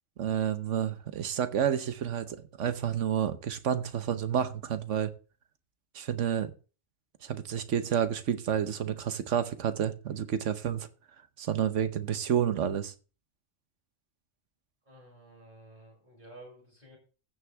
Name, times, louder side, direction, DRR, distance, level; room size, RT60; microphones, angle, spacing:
voice 1, 0.2-5.1 5.9-6.5 7.2-10.9 11.4-12.9, right 9 dB, 90° right, 1.2 m, -30 dB
voice 2, 14.8-17.0, right 1 dB, 40° right, 6.9 m, -52 dB
15.5 x 6.3 x 3.5 m
omnidirectional pair, 1.2 m